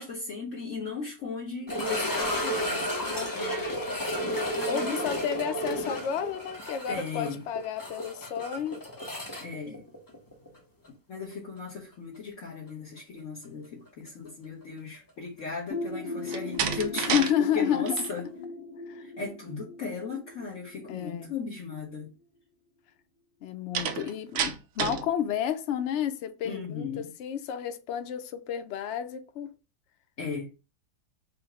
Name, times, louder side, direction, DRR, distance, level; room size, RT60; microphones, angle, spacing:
voice 1, 0.0-2.8 4.5-5.1 6.9-7.4 9.4-9.8 11.1-17.2 17.5-18.2 19.0-22.1 26.4-27.1 30.2-30.5, left 4 dB, 50° left, 1.2 m, -36 dB
sound 1, 1.7-10.6 10.8-10.9 11.6-11.7 14.3-14.4, equal, 20° left, 0.5 m, -32 dB
voice 2, 3.1-3.7 4.6-8.8 17.0-18.0 18.9-19.0 20.9-21.3 23.4-29.5, left 9 dB, 85° left, 0.6 m, -31 dB
sound 2, 15.7-21.3, left 2 dB, 70° left, 1.9 m, -38 dB
Slam, 16.2-17.3 17.7-18.1 23.7-25.1, right 7 dB, 65° right, 0.9 m, -30 dB
4.8 x 2.1 x 4.7 m
omnidirectional pair, 1.8 m